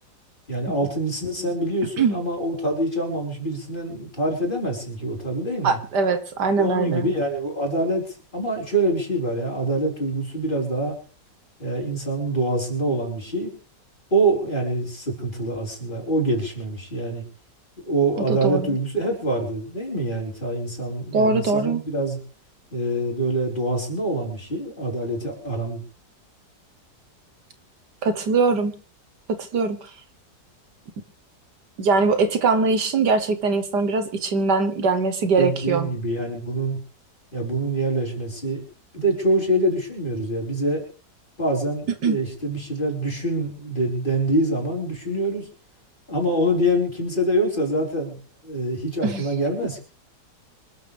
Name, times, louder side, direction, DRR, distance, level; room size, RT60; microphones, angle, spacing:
voice 1, 0.5-5.8 6.6-8.0 8.3-11.0 11.6-13.5 14.1-17.2 17.9-22.2 22.7-25.8 35.4-36.8 37.3-38.6 38.9-40.8 41.4-45.5 46.1-48.2 48.4-49.8, right 1 dB, 25° left, 0 dB, 4.9 m, -25 dB
voice 2, 5.6-7.1 18.4-18.7 21.1-21.8 28.0-28.7 29.3-29.8 31.8-35.9 42.0-42.2 49.0-49.3, right 4 dB, 70° right, 9 dB, 1.8 m, -21 dB
26.0 x 13.0 x 3.5 m, 0.40 s
omnidirectional pair, 1.9 m